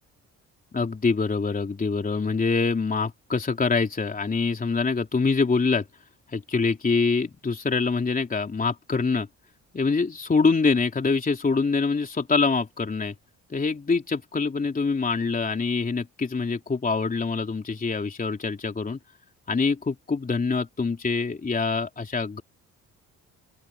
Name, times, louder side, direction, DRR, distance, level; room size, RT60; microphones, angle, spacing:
voice 1, 0.7-5.8 6.3-9.3 9.7-13.1 13.5-19.0 19.5-22.4, left 4 dB, 30° left, 3.4 m, -25 dB
open air
cardioid pair, 90°, 30 cm